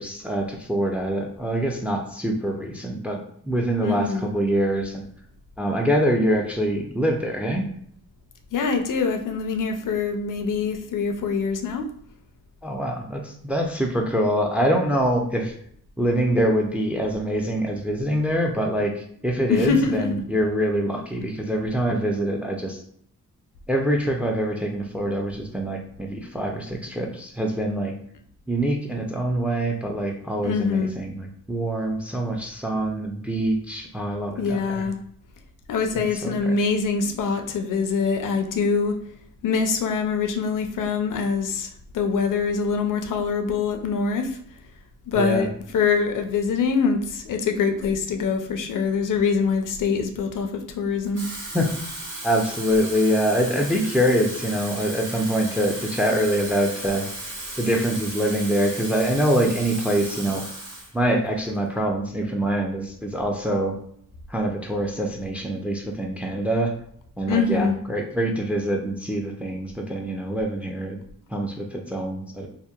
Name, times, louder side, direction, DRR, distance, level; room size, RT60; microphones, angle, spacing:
voice 1, 0.0-5.1 5.6-7.6 12.6-15.5 16.0-22.8 23.7-27.9 28.5-34.9 35.9-36.6 45.1-45.5 51.5-51.7 52.2-57.1 57.6-60.4 60.9-63.8 64.3-66.7 67.2-71.0 71.3-72.5, right 1 dB, 5° right, 2 dB, 0.4 m, -25 dB
voice 2, 3.8-4.3 8.5-11.9 19.5-20.1 30.4-30.9 34.4-35.0 35.7-39.0 39.4-41.7 41.9-44.4 45.1-45.5 45.7-51.2 67.3-67.8, left 5 dB, 70° left, 5 dB, 0.5 m, -24 dB
Water tap faucet / Fill (with liquid), 51.0-60.9 61.3-61.6, right 1 dB, 60° right, 1.2 m, -35 dB
2.8 x 2.1 x 2.3 m, 0.66 s
cardioid pair, 85°, 33 cm